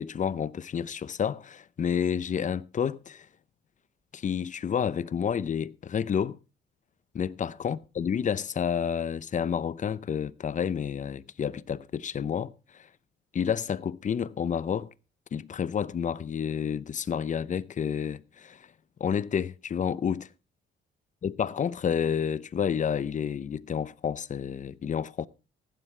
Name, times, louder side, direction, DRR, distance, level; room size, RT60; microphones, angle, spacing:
voice 1, 0.0-3.3 4.1-6.4 7.1-12.5 13.3-14.9 15.3-18.6 19.0-20.3 21.2-25.3, left 7 dB, 40° left, 0.6 m, -30 dB
14.5 x 11.5 x 3.2 m
cardioid pair, 90°, 20 cm